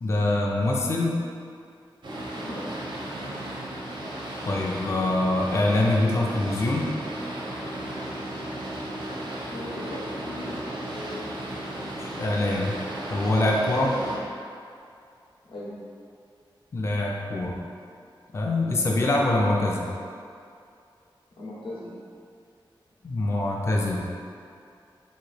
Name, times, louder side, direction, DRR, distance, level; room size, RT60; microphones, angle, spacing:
voice 1, 0.0-1.2 4.4-6.9 12.0-12.8 13.1-14.0 16.7-17.6 18.3-19.9 23.0-24.1, left 2 dB, 30° left, -2 dB, 0.3 m, -24 dB
Boat Water vehicle, 2.0-14.2, right 1 dB, 70° right, 0.6 m, -35 dB
voice 2, 9.4-11.3 13.9-14.1 15.4-15.8 21.3-21.9, left 1 dB, 80° left, -7 dB, 0.8 m, -39 dB
3.0 x 2.6 x 4.0 m, 2.4 s
wide cardioid pair, 125°, 9 cm